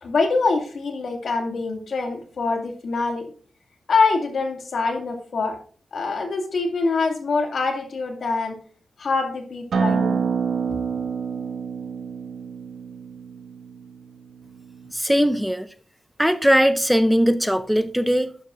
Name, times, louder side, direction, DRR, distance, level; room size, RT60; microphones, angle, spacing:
voice 1, 0.0-3.3 3.9-5.6 5.9-8.6 9.0-10.2, left 4 dB, 70° left, 3 dB, 2.3 m, -24 dB
Acoustic guitar, 9.7-14.9, right 6 dB, 85° right, 1.7 m, -27 dB
voice 2, 14.9-15.7 16.2-18.4, equal, ahead, 11 dB, 0.6 m, -20 dB
12.0 x 10.5 x 2.6 m, 0.43 s
wide cardioid pair, 95°, 0 cm